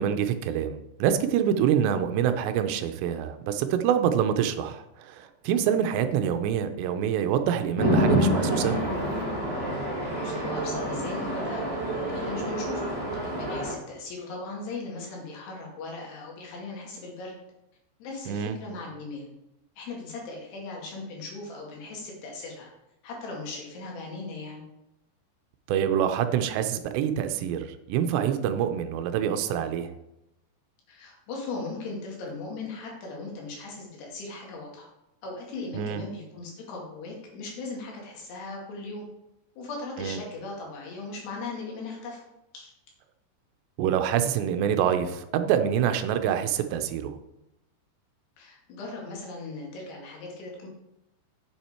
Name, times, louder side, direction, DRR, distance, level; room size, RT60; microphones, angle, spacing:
voice 1, 0.0-8.8 18.3-18.6 25.7-29.9 35.7-36.0 40.0-40.2 43.8-47.2, right 9 dB, 85° right, 9 dB, 2.8 m, -26 dB
Chatter / Traffic noise roadway noise / Train, 7.8-13.7, equal, 15° right, 3.0 m, -27 dB
voice 2, 10.2-11.8 12.1-12.9 13.2-17.4 18.0-19.3 19.8-22.7 23.0-24.6 30.9-34.9 35.2-39.1 39.6-42.2 42.5-42.7 48.4-50.7, left 3 dB, 70° left, -2 dB, 4.2 m, -38 dB
8.5 x 7.5 x 4.4 m, 0.89 s
omnidirectional pair, 5.0 m